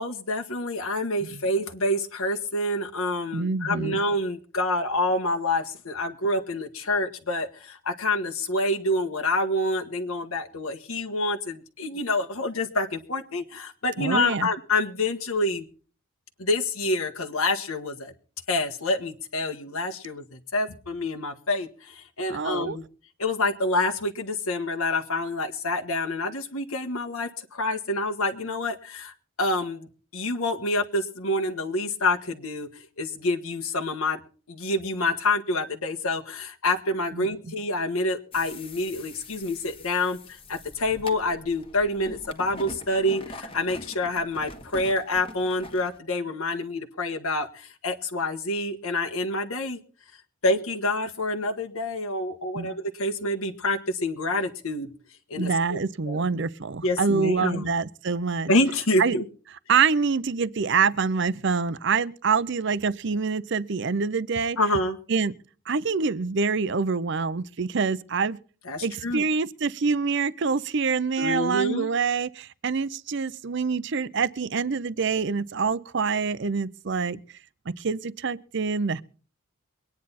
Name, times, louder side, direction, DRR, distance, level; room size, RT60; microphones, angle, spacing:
voice 1, 0.0-15.7 16.4-18.1 18.5-22.8 23.2-29.1 29.4-29.9 30.1-34.2 34.5-49.8 50.4-54.9 55.3-55.8 56.1-56.2 56.8-57.7 58.5-59.2 64.6-65.0 68.7-69.2 71.2-71.9, left 2 dB, 85° left, 1.4 m, -27 dB
voice 2, 3.3-4.0 14.0-14.5 22.3-22.8 37.1-37.3 52.5-52.7 55.4-58.5 59.0-59.2 59.7-64.6 65.1-65.3 65.7-68.4 68.8-77.2 77.7-79.0, right 5 dB, 55° right, 0.6 m, -26 dB
sound 1, 38.3-46.0, left 2 dB, 25° left, 1.4 m, -43 dB
23.5 x 9.6 x 4.2 m
head